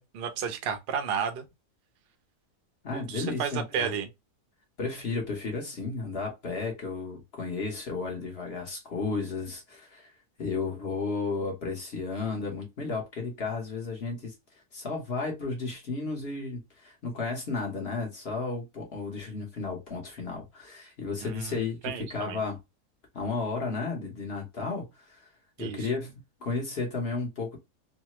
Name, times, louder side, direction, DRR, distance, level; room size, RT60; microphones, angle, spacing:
voice 1, 0.0-1.5 2.9-4.1 21.2-21.5 21.8-22.4 25.6-25.8, right 7 dB, 60° right, 0.6 m, -32 dB
voice 2, 2.8-3.9 4.8-10.1 10.4-14.3 14.7-22.6 23.1-25.3 25.6-26.1 26.4-27.6, left 4 dB, 45° left, 1.1 m, -33 dB
3.2 x 2.1 x 2.9 m
omnidirectional pair, 1.6 m